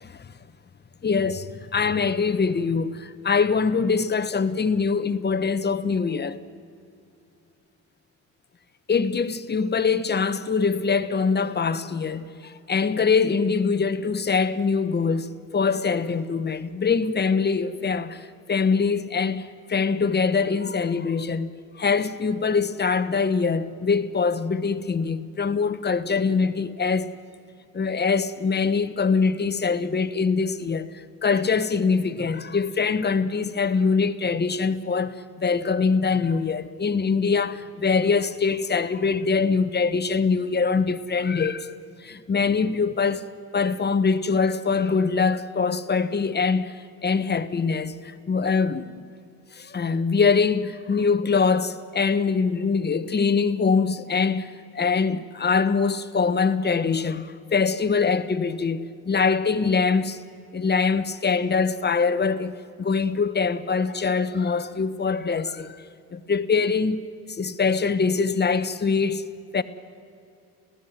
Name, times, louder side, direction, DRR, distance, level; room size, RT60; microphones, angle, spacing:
voice 1, 1.0-1.5 1.7-6.4 8.9-27.1 27.7-41.7 42.0-43.3 43.5-49.1 49.5-60.2 60.5-65.8 66.1-69.2 69.5-69.6, left 5 dB, 35° left, 1.2 m, -23 dB
29.5 x 16.0 x 9.5 m
cardioid pair, 90°, 30 cm